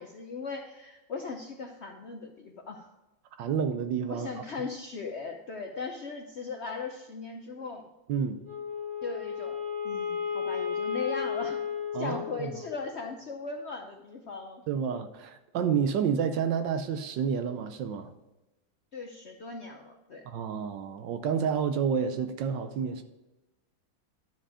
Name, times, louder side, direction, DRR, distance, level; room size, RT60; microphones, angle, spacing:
voice 1, 0.0-2.9 4.1-7.9 9.0-9.6 9.8-11.6 11.9-14.6 16.0-16.1 18.9-20.2, left 4 dB, 80° left, 0.6 m, -38 dB
voice 2, 3.4-4.3 8.1-8.4 11.9-12.5 14.7-18.1 20.2-23.0, right 7 dB, 70° right, 1.3 m, -29 dB
Wind instrument woodwind instrument, 8.4-12.9, left 7 dB, 90° right, 3.4 m, -33 dB
11.5 x 5.0 x 4.9 m
omnidirectional pair, 2.1 m